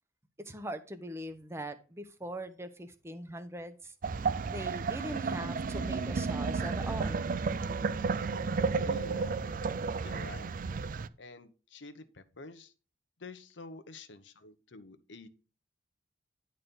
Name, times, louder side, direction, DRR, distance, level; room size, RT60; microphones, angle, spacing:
voice 1, 0.4-3.9 4.4-7.2, right 1 dB, 15° right, 10 dB, 0.8 m, -41 dB
sound 1, 4.0-11.1, right 4 dB, 45° right, 0.4 m, -32 dB
voice 2, 8.8-9.4 10.0-10.5 11.2-12.7 13.2-15.3, left 3 dB, 75° left, 10 dB, 0.9 m, -49 dB
10.5 x 4.2 x 5.2 m, 0.34 s
head